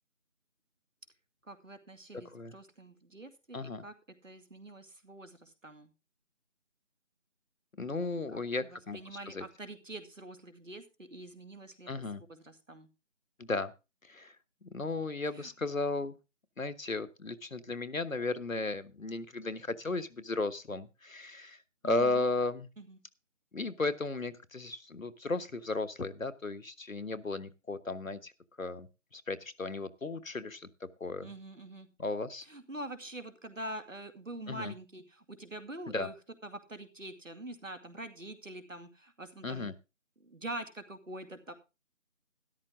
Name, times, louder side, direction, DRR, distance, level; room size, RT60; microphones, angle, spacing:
voice 1, 1.5-3.9 4.2-5.9 8.3-12.0 12.3-12.9 15.3-15.5 21.8-22.2 22.8-23.0 31.2-31.9 32.5-36.1 36.4-39.7 40.2-41.5, right 1 dB, 70° right, 8 dB, 2.4 m, -45 dB
voice 2, 3.5-3.8 7.8-9.4 11.9-12.2 13.4-13.7 14.1-14.3 14.6-16.1 16.6-21.6 21.8-22.7 23.5-28.3 28.6-28.9 29.1-30.7 31.0-31.3 32.0-32.4 34.5-34.7 35.9-36.1 39.4-39.7, left 3 dB, 80° left, 13 dB, 1.3 m, -35 dB
13.0 x 11.5 x 3.7 m, 0.29 s
figure-of-eight pair, 175°, 39 cm